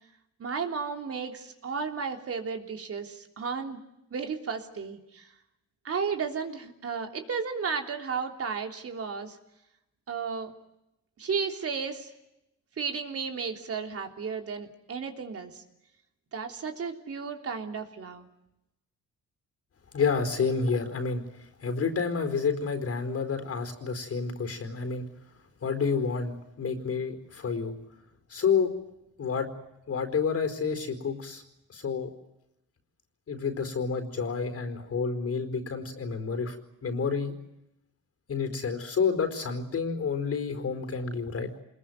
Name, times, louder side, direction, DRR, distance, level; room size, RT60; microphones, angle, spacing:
voice 1, 0.4-3.8 4.1-5.3 5.8-9.4 10.1-10.5 11.2-12.1 12.8-15.6 16.3-18.3, right 5 dB, 50° right, 4 dB, 3.4 m, -33 dB
voice 2, 19.9-25.1 25.6-27.8 28.3-28.7 29.2-29.5 29.9-31.4 31.7-32.1 33.3-37.3 38.3-41.5, left 5 dB, 50° left, 8 dB, 4.5 m, -29 dB
26.0 x 21.0 x 9.5 m, 0.87 s
cardioid pair, 90°, 30 cm